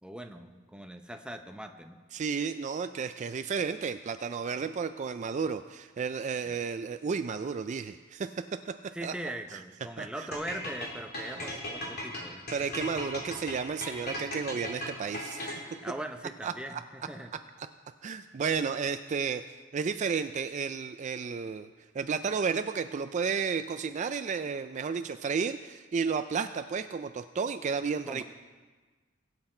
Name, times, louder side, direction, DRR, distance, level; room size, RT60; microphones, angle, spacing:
voice 1, 0.0-2.0 6.4-6.5 8.9-12.4 15.8-17.3 28.1-28.2, right 1 dB, 5° right, 5 dB, 0.7 m, -40 dB
voice 2, 2.1-8.3 8.7-8.8 9.0-9.1 9.5-9.6 10.0-10.3 12.5-15.5 16.4-16.8 18.0-19.4 19.7-21.7 21.9-28.2, right 5 dB, 35° right, 10 dB, 0.3 m, -32 dB
sound 1, 10.3-15.8, left 1 dB, 50° left, 2.7 m, -37 dB
22.0 x 7.8 x 4.4 m, 1.4 s
head